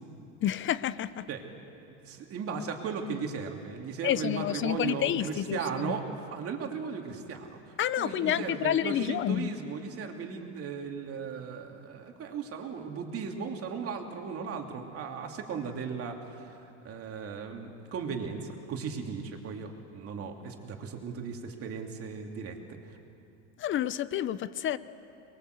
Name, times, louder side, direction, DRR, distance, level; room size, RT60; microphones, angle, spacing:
voice 1, 0.4-1.2 4.0-5.6 5.8-5.9 7.8-9.5 23.6-24.8, left 11 dB, 35° left, 16 dB, 0.7 m, -29 dB
voice 2, 1.9-23.0, right 5 dB, 40° right, 3 dB, 2.9 m, -37 dB
23.5 x 22.0 x 8.1 m, 2.6 s
supercardioid pair, 125°, 35 cm